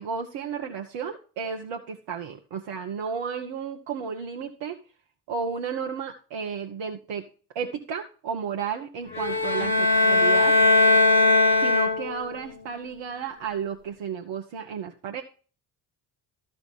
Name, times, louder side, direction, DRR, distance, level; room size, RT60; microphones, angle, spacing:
voice 1, 0.0-4.8 5.3-7.2 7.5-10.5 11.6-15.2, right 6 dB, 60° right, 3 dB, 1.4 m, -33 dB
sound 1, 9.1-12.4, left 2 dB, 85° left, 1.2 m, -20 dB
13.0 x 5.2 x 5.5 m, 0.38 s
figure-of-eight pair, 40°, 50 cm